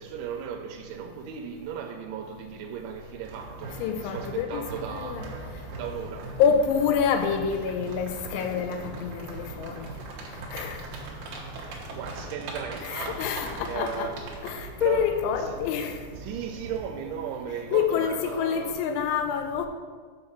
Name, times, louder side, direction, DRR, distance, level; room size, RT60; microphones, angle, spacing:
voice 1, 0.0-6.4 11.9-13.4 13.6-14.2 14.5-15.1 15.4-15.6 16.2-18.8, right 8 dB, 85° right, 3 dB, 3.0 m, -36 dB
sound 1, 3.2-16.8, right 3 dB, 70° right, 2.0 m, -40 dB
voice 2, 3.8-4.6 4.9-5.2 6.4-9.9 10.5-10.8 12.8-14.1 14.4-16.0 17.7-19.7, left 7 dB, 90° left, 6 dB, 3.1 m, -27 dB
6.7 x 5.5 x 5.9 m, 1.5 s
omnidirectional pair, 5.2 m